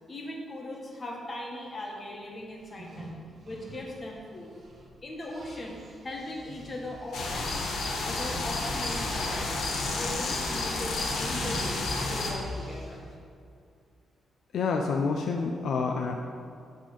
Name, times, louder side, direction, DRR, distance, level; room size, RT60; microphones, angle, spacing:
voice 1, 0.1-3.2 3.4-4.5 5.0-7.5 7.8-11.8 12.1-13.0, left 1 dB, 25° left, -2 dB, 1.6 m, -39 dB
sound 1, 2.6-4.9 5.3-13.1, equal, 45° right, 1.5 m, -42 dB
sound 2, 7.1-12.3, left 3 dB, 90° left, 1.6 m, -31 dB
voice 2, 14.5-16.2, left 4 dB, 65° left, 2 dB, 0.5 m, -28 dB
10.5 x 3.7 x 6.8 m, 2.4 s
cardioid pair, 145°, 0 cm